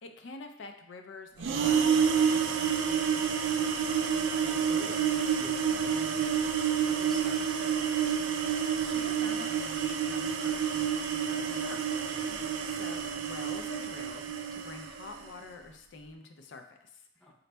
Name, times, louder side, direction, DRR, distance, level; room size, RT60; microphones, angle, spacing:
voice 1, 0.0-3.0 8.9-11.8 12.7-17.0, left 3 dB, 70° left, 6 dB, 0.4 m, -47 dB
sound 1, 1.4-15.3, right 7 dB, 85° right, 0.4 m, -29 dB
voice 2, 4.4-7.7 12.1-12.4 17.2-17.3, equal, ahead, -3 dB, 0.6 m, -48 dB
4.1 x 3.9 x 2.2 m, 0.72 s
head